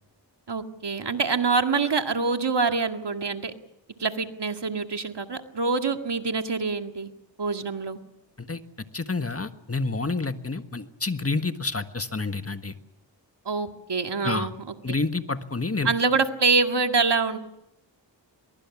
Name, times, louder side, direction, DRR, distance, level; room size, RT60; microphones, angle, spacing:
voice 1, 0.5-3.5 4.0-7.1 7.4-8.0 13.5-15.0 15.8-17.4, right 4 dB, 65° right, 6 dB, 2.0 m, -25 dB
voice 2, 8.9-12.7 14.2-14.5 14.8-15.9, left 3 dB, 30° left, 9 dB, 1.5 m, -28 dB
23.0 x 22.5 x 7.2 m, 0.84 s
cardioid pair, 50°, 44 cm